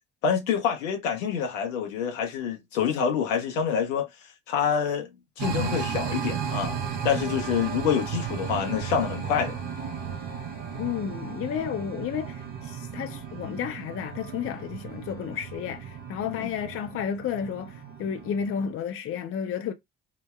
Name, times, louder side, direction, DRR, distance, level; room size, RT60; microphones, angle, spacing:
voice 1, 0.2-4.1 4.5-5.1 5.4-9.6 16.3-16.5, left 7 dB, 75° left, 0.7 m, -27 dB
sound 1, 5.4-18.7, right 7 dB, 55° right, 0.9 m, -35 dB
voice 2, 10.7-19.7, left 8 dB, 35° left, 0.5 m, -32 dB
3.8 x 2.0 x 2.2 m
figure-of-eight pair, 40°, 38 cm